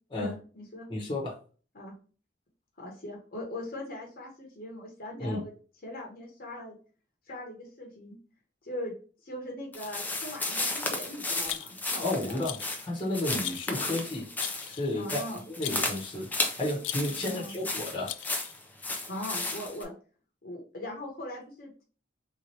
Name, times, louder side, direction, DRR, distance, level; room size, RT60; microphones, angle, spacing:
voice 1, 0.2-0.9 1.7-1.9 2.8-5.5 5.8-6.8 7.3-8.2 8.6-8.9 9.2-12.4 15.0-15.4 17.2-17.5 19.1-19.9 20.4-21.8, left 1 dB, 50° left, 0 dB, 1.0 m, -40 dB
voice 2, 0.9-1.4 5.2-5.4 12.0-12.6 12.8-14.3 14.7-16.3 16.6-18.1, left 1 dB, 25° left, -3 dB, 1.1 m, -32 dB
sound 1, 9.7-19.8, left 2 dB, 10° left, 0.6 m, -34 dB
Rattle, 11.4-12.0 12.4-12.8 13.4-13.8 14.4-14.9 15.6-16.0 16.8-17.3 18.1-18.6, left 14 dB, 85° left, 0.3 m, -39 dB
3.5 x 3.0 x 3.2 m, 0.38 s
head